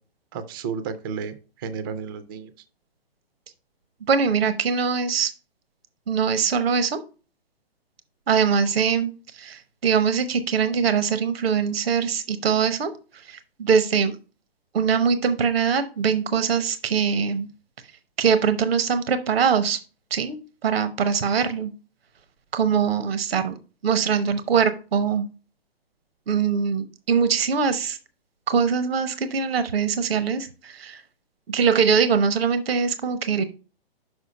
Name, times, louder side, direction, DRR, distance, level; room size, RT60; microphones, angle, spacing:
voice 1, 0.3-2.5, right 6 dB, 25° right, 12 dB, 0.4 m, -32 dB
voice 2, 4.1-5.3 6.1-7.0 8.3-12.9 13.3-14.1 14.7-17.5 18.2-19.8 20.1-21.7 22.5-23.5 23.8-25.3 26.3-28.0 28.5-31.0 31.5-33.4, right 6 dB, 75° right, 11 dB, 0.9 m, -22 dB
6.3 x 4.6 x 5.2 m, 0.35 s
hypercardioid pair, 140°, 30 cm